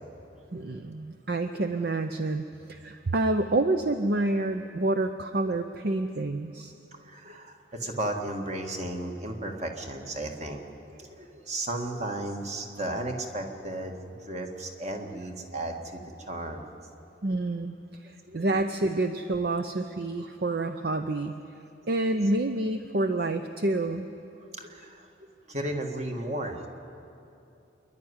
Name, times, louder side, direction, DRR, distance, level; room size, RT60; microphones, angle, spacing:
voice 1, 0.5-6.7 17.2-21.4 21.9-24.1, right 2 dB, 55° right, 8 dB, 0.6 m, -28 dB
voice 2, 7.1-16.7 18.3-18.4 22.1-22.2 24.4-25.1 25.5-26.7, right 1 dB, 35° right, 3 dB, 1.7 m, -34 dB
27.5 x 11.5 x 9.8 m, 2.7 s
head